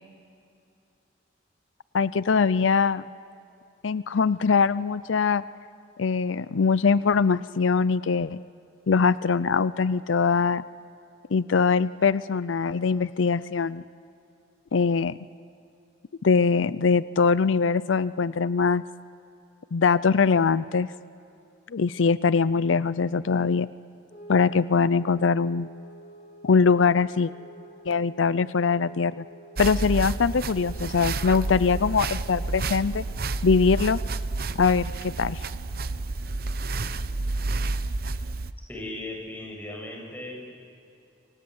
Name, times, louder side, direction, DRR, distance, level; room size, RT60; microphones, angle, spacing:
voice 1, 1.9-3.0 3.8-5.4 6.0-8.4 8.9-10.6 11.3-13.8 14.7-15.2 16.2-18.8 19.7-20.9 21.7-23.7 24.3-25.7 26.4-27.3 27.9-29.2 29.6-33.0 33.4-34.0 34.6-35.4, left 5 dB, 90° left, 16 dB, 0.5 m, -22 dB
sound 1, 24.1-32.5, right 1 dB, 40° left, 2.8 m, -49 dB
sound 2, 29.6-38.5, right 3 dB, 50° right, 0.9 m, -30 dB
voice 2, 38.7-40.6, left 1 dB, 10° left, -2 dB, 7.9 m, -37 dB
29.0 x 25.0 x 8.0 m, 2.6 s
head